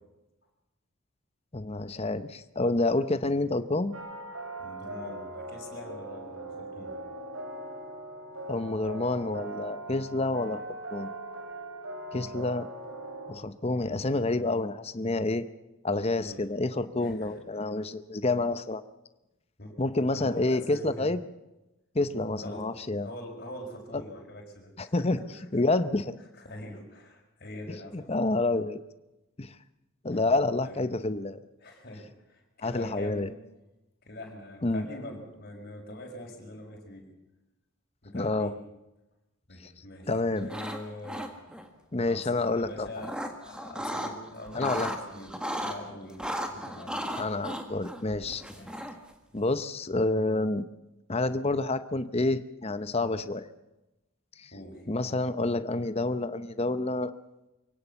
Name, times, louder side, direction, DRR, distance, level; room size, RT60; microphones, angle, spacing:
voice 1, 1.5-3.9 8.5-10.6 10.9-11.1 12.1-12.7 13.3-15.4 15.8-18.8 19.8-21.2 21.9-23.1 24.8-25.2 25.5-26.1 27.7-28.8 29.4-29.6 30.0-31.4 32.6-33.3 34.6-34.9 38.1-38.5 40.1-40.5 41.9-42.9 44.5-44.9 47.2-48.4 49.3-50.6 51.1-53.5 54.4-54.5 54.9-57.1, left 2 dB, 30° left, 12 dB, 0.8 m, -28 dB
sound 1, 3.9-13.3, right 1 dB, 70° right, 3.1 m, -40 dB
voice 2, 4.6-6.9 16.2-16.4 17.0-17.4 19.6-21.1 22.4-22.6 23.0-25.1 26.4-28.1 30.1-30.2 30.6-30.8 31.6-33.3 34.0-37.1 38.0-38.5 39.5-41.3 42.1-47.1 47.4-47.5 48.5-48.8 54.5-54.8, left 1 dB, 45° left, 0 dB, 5.7 m, -43 dB
sound 2, 40.4-40.8 41.0-41.7 42.6-44.1 44.5-45.8 46.2-49.1, equal, 5° right, 1.7 m, -35 dB
24.0 x 17.0 x 7.0 m, 0.98 s
head